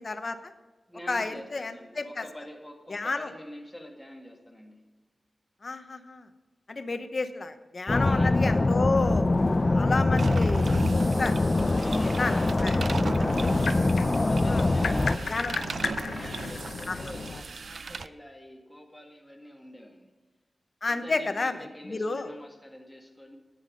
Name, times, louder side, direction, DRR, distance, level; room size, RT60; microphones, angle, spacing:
voice 1, 0.1-0.5 1.1-2.2 2.9-3.3 5.6-6.3 6.7-9.2 9.6-11.3 11.7-12.9 13.2-13.5 14.3-14.6 15.3-15.5 16.9-17.0 20.8-21.6 21.9-22.3, left 3 dB, 50° left, 9 dB, 0.8 m, -31 dB
voice 2, 0.9-4.8 8.0-8.4 11.8-12.3 14.3-20.1 20.9-23.4, equal, 10° left, 1 dB, 2.0 m, -45 dB
sound 1, 7.9-15.2, left 2 dB, 35° left, 0.4 m, -24 dB
sound 2, 10.2-18.1, right 4 dB, 70° right, 0.4 m, -38 dB
sound 3, 12.3-17.4, left 4 dB, 85° left, 0.7 m, -35 dB
10.5 x 9.3 x 5.2 m, 1.2 s
wide cardioid pair, 90°, 0 cm